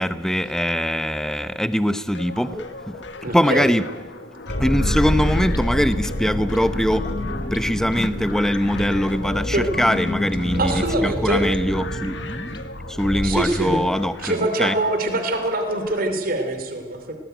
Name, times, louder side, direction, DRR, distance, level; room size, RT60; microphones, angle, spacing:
voice 1, 0.0-3.8 4.6-7.0 7.5-12.2 12.9-14.8, equal, 5° left, 12 dB, 0.8 m, -22 dB
Getting rid of it, 2.1-16.0, left 3 dB, 70° left, 1.7 m, -39 dB
voice 2, 3.2-3.7 9.5-9.7 10.6-11.4 13.2-13.8 14.2-17.1, right 2 dB, 50° right, 6 dB, 3.0 m, -24 dB
sound 1, 4.5-14.1, left 1 dB, 55° left, 2.6 m, -28 dB
sound 2, 5.0-12.7, left 1 dB, 25° left, 1.1 m, -35 dB
18.5 x 18.0 x 9.1 m, 1.3 s
head